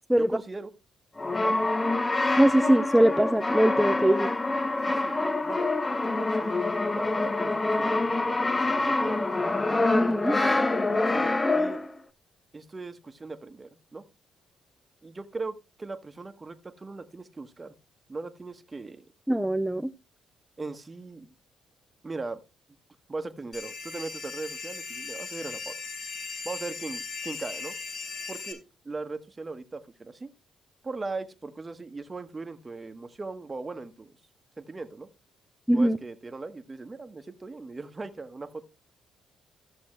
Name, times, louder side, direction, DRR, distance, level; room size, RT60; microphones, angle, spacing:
voice 1, 0.2-0.7 1.4-1.6 4.1-4.2 4.9-5.7 6.0-9.3 10.9-11.8 12.5-14.0 15.0-17.7 18.1-19.1 20.6-21.3 22.0-22.4 23.1-25.8 26.4-27.7 28.3-30.3 30.8-34.1 34.6-35.1 35.7-38.6, right 3 dB, 25° right, 1.2 m, -39 dB
Brass instrument, 1.2-12.0, left 2 dB, 20° left, 0.8 m, -26 dB
voice 2, 2.4-4.3 9.9-10.4 19.3-19.9 35.7-36.0, right 1 dB, 5° right, 0.5 m, -22 dB
sound 1, 23.5-28.5, left 4 dB, 55° left, 4.2 m, -38 dB
14.0 x 6.9 x 3.2 m
cardioid pair, 90°, 0 cm